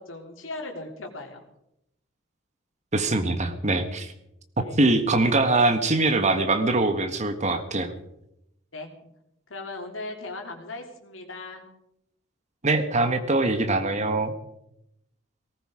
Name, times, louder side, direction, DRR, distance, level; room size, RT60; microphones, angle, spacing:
voice 1, 0.0-1.4 4.6-4.8 8.7-9.1 9.5-11.7, left 2 dB, 80° left, 2 dB, 3.1 m, -38 dB
voice 2, 2.9-4.1 4.6-7.9 12.6-14.3, right 2 dB, 35° right, 8 dB, 1.6 m, -23 dB
18.5 x 15.0 x 5.0 m, 0.81 s
head